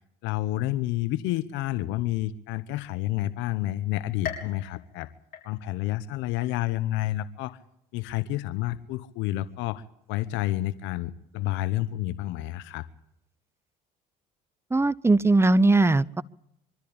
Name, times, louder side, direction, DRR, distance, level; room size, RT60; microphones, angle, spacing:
voice 1, 0.2-5.1 5.4-7.6 7.9-9.8 10.1-12.9, left 15 dB, 75° left, 14 dB, 1.0 m, -29 dB
sound 1, 4.2-5.9 6.4-7.0 7.5-7.6 8.6-8.7, left 8 dB, 45° left, 6.6 m, -40 dB
voice 2, 14.7-16.2, right 2 dB, 15° right, 19 dB, 0.7 m, -20 dB
24.0 x 13.0 x 8.7 m, 0.77 s
supercardioid pair, 75°, 20 cm